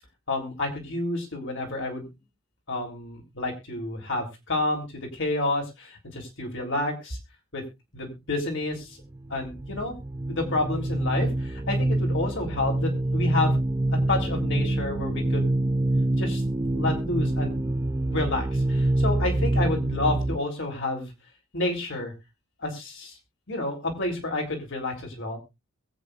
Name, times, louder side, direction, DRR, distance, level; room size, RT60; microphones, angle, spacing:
voice 1, 0.3-2.1 2.7-7.2 7.5-7.6 7.9-9.0 9.3-10.0 10.3-13.6 14.1-15.5 16.2-16.4 16.7-17.6 18.1-21.1 21.5-22.1 22.6-23.2 23.5-25.4, left 2 dB, 60° left, 2 dB, 3.5 m, -30 dB
sound 1, 9.1-20.4, right 1 dB, 20° right, 0.5 m, -26 dB
22.0 x 8.4 x 2.5 m, 0.25 s
head